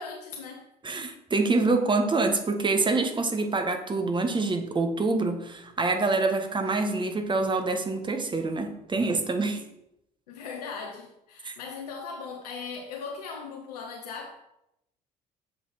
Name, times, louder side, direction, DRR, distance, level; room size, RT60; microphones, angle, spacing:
voice 1, 0.0-0.7 9.5-9.6 10.3-14.4, left 5 dB, 80° left, 1 dB, 0.9 m, -38 dB
voice 2, 0.8-9.6 11.4-11.5, right 3 dB, 25° right, 6 dB, 1.4 m, -26 dB
7.2 x 5.4 x 4.6 m, 0.82 s
figure-of-eight pair, 55°, 20 cm